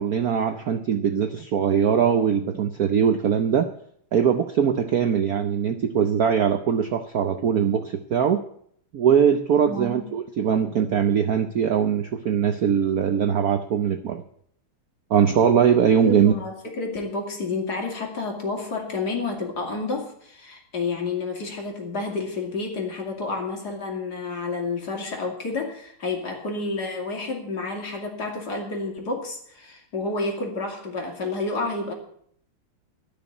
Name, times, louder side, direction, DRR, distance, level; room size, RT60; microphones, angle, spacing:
voice 1, 0.0-3.7 4.1-8.4 8.9-14.2 15.1-16.3, right 8 dB, 60° right, 8 dB, 1.0 m, -21 dB
voice 2, 9.7-10.1 16.0-31.9, left 3 dB, 45° left, 2 dB, 3.0 m, -30 dB
13.5 x 6.4 x 9.7 m, 0.64 s
omnidirectional pair, 2.4 m